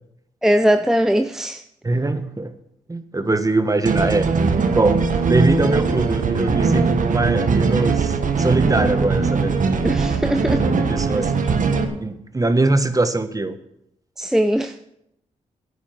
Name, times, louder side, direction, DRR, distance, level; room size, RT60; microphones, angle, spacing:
voice 1, 0.4-1.6 9.8-10.6 14.2-14.7, equal, 5° right, 8 dB, 0.7 m, -20 dB
voice 2, 1.8-2.5 2.9-4.3 4.7-9.8 10.6-11.3 12.0-13.6, right 2 dB, 25° right, 10 dB, 1.3 m, -22 dB
sound 1, 3.9-11.9, right 4 dB, 65° right, 1.4 m, -20 dB
10.5 x 8.6 x 7.7 m, 0.80 s
cardioid pair, 50°, 14 cm